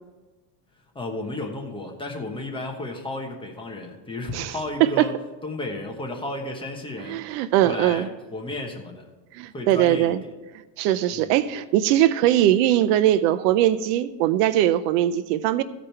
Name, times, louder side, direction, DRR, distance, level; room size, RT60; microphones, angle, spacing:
voice 1, 0.9-5.1 5.4-9.1 9.5-10.3 11.1-11.3, left 2 dB, 10° left, 1 dB, 1.0 m, -33 dB
voice 2, 7.0-8.1 9.3-10.2 10.8-15.6, right 12 dB, 70° right, 14 dB, 0.6 m, -21 dB
15.0 x 5.1 x 4.4 m, 1.2 s
cardioid pair, 155°, 49 cm